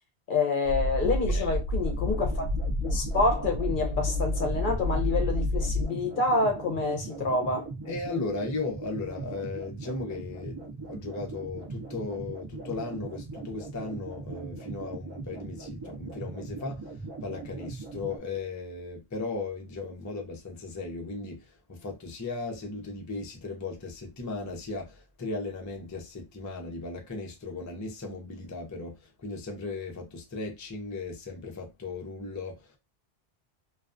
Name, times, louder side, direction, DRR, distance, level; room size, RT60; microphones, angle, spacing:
voice 1, 0.3-2.5 2.8-7.7, left 3 dB, 55° left, 0.7 m, -27 dB
sound 1, 0.6-5.9, left 1 dB, 75° right, 0.8 m, -29 dB
voice 2, 1.3-1.6 7.9-16.9 17.2-32.8, left 3 dB, 25° left, 0.4 m, -36 dB
sound 2, 1.8-18.2, right 3 dB, 30° right, 0.5 m, -40 dB
2.4 x 2.2 x 2.4 m
omnidirectional pair, 1.1 m